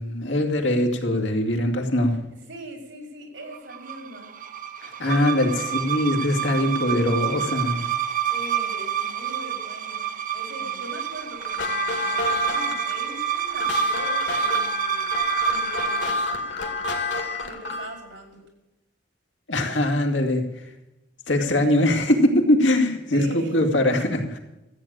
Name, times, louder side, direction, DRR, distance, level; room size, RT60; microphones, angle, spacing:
voice 1, 0.0-2.2 4.8-7.9 19.5-20.4 21.3-24.4, left 1 dB, 90° left, 2 dB, 2.4 m, -22 dB
voice 2, 2.5-4.3 5.0-6.0 8.3-16.9 17.4-18.4 23.1-23.6, right 1 dB, 85° right, 2 dB, 5.1 m, -41 dB
sound 1, 3.5-16.2, right 10 dB, 45° right, 0.7 m, -29 dB
sound 2, 11.4-18.0, left 2 dB, 70° left, 2.4 m, -28 dB
14.5 x 8.9 x 8.8 m, 0.95 s
head